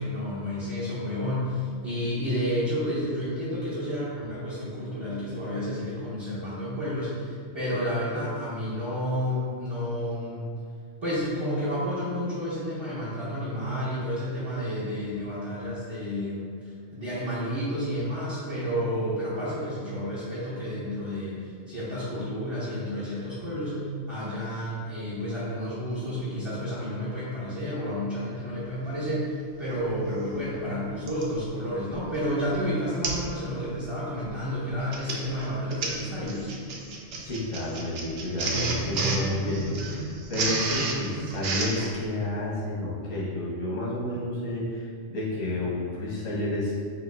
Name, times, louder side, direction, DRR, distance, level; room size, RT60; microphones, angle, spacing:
voice 1, 0.0-10.4 11.0-36.5, equal, 25° right, -11 dB, 0.8 m, -31 dB
Printer, 29.9-30.0 31.1-31.3 31.9-32.2 32.4-32.5 33.0-33.3 33.6-33.9 34.7-41.9, right 3 dB, 60° right, 0.7 m, -31 dB
voice 2, 37.2-46.8, left 1 dB, 85° left, -7 dB, 1.6 m, -30 dB
5.8 x 2.7 x 2.6 m, 2.1 s
omnidirectional pair, 1.4 m